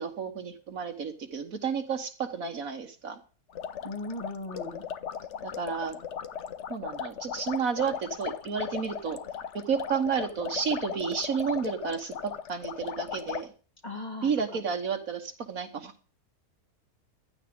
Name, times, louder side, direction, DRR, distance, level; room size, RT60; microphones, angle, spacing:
voice 1, 0.0-3.2 5.4-6.0 6.7-9.2 9.5-13.5 14.2-15.9, right 6 dB, 60° right, 7 dB, 1.6 m, -31 dB
sound 1, 3.5-13.4, left 8 dB, 55° left, 1.0 m, -37 dB
voice 2, 3.8-4.8 13.8-14.3, left 2 dB, 25° left, 3 dB, 2.0 m, -37 dB
15.5 x 11.5 x 3.7 m, 0.39 s
omnidirectional pair, 1.7 m